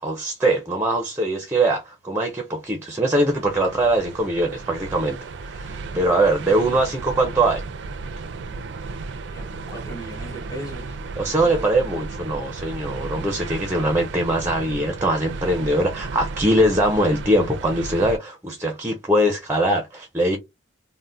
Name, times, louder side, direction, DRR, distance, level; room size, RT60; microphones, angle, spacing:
voice 1, 0.0-7.6 11.2-20.4, right 1 dB, 10° right, 0.5 m, -22 dB
sound 1, 3.1-18.2, right 3 dB, 65° right, 0.4 m, -34 dB
voice 2, 9.2-11.0 11.4-11.7, right 1 dB, 20° left, 1.2 m, -37 dB
3.4 x 2.1 x 2.5 m
head